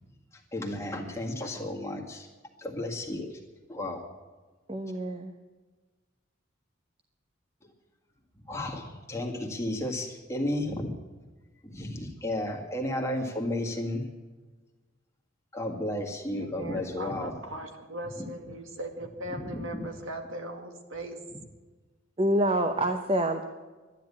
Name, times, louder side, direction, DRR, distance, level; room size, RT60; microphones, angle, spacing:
voice 1, 0.5-2.3 2.6-3.4 3.7-4.0 8.5-10.9 11.6-14.0 15.5-17.4 18.1-18.3 19.3-19.8 21.3-21.4, left 1 dB, 15° left, 1 dB, 1.9 m, -33 dB
voice 2, 4.7-5.3 22.2-23.4, right 1 dB, 25° right, 6 dB, 0.8 m, -26 dB
voice 3, 16.4-21.2, right 1 dB, 80° right, 5 dB, 2.1 m, -39 dB
12.5 x 10.5 x 8.6 m, 1.3 s
head